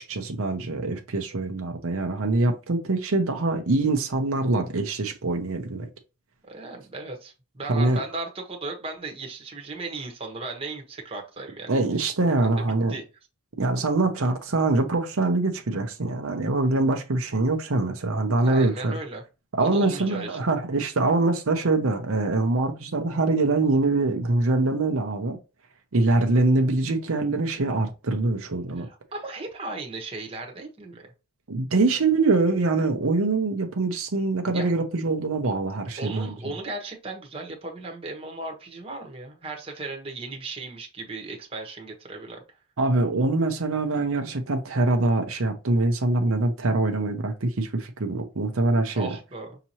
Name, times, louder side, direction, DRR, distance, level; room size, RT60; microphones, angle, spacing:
voice 1, 0.0-5.9 7.7-8.0 11.7-13.0 13.6-19.0 19.5-25.4 25.9-28.9 31.5-36.3 42.8-49.2, right 2 dB, 70° right, 0.7 m, -24 dB
voice 2, 6.4-11.7 12.9-13.0 18.4-19.2 19.6-20.4 28.8-31.1 34.5-34.7 36.0-42.4 49.0-49.6, right 2 dB, 25° right, 1.1 m, -36 dB
5.8 x 2.9 x 2.9 m
head